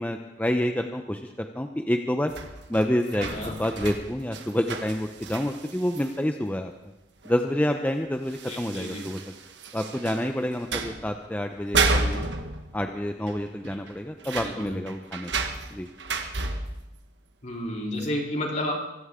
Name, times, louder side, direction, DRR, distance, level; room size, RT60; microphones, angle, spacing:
voice 1, 0.0-2.3 2.7-3.3 3.6-6.7 7.2-9.2 9.7-12.3 12.7-15.3 15.7-15.9, left 1 dB, 10° left, 5 dB, 0.7 m, -28 dB
sound 1, 2.3-6.2 7.2-7.3 7.7-7.8 8.3-10.3 10.6-11.1 11.6-13.0 13.3-13.4 13.7-16.9 18.0-18.1, right 3 dB, 80° right, 1.4 m, -31 dB
voice 2, 3.2-3.6 8.5-9.1 14.4-14.8 17.4-18.7, left 1 dB, 40° left, -1 dB, 3.4 m, -31 dB
24.0 x 15.0 x 3.7 m, 0.93 s
head